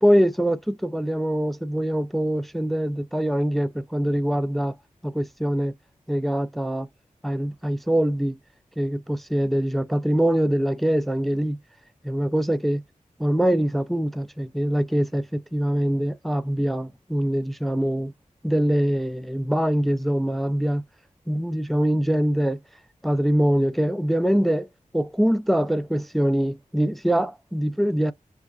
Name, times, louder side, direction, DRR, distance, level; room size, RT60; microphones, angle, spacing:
voice 1, 0.0-4.7 5.0-5.7 6.1-6.9 7.2-8.4 8.8-11.6 12.0-12.8 13.2-18.1 18.4-20.8 21.3-22.6 23.0-24.7 24.9-28.1, equal, ahead, 0.3 m, -23 dB
3.9 x 2.2 x 2.3 m
wide cardioid pair, 55°, 14 cm